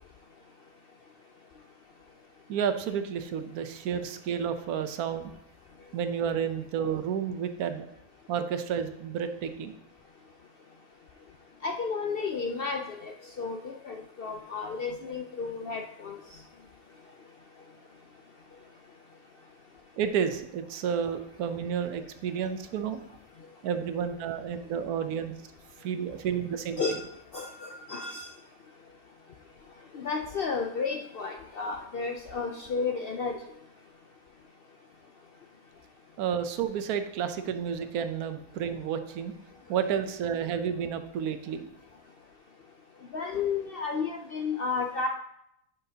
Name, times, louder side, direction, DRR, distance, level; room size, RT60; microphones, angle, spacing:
voice 1, 2.5-5.3 5.9-7.9 8.3-9.7 20.0-23.0 23.6-25.3 25.8-26.8 36.2-39.3 39.7-41.7, right 7 dB, 85° right, 9 dB, 1.2 m, -31 dB
voice 2, 11.6-13.1 13.4-16.2 26.8-27.0 27.3-28.3 29.9-33.3 43.1-45.1, left 5 dB, 65° left, 2 dB, 0.5 m, -32 dB
10.5 x 5.7 x 2.8 m, 0.78 s
omnidirectional pair, 1.5 m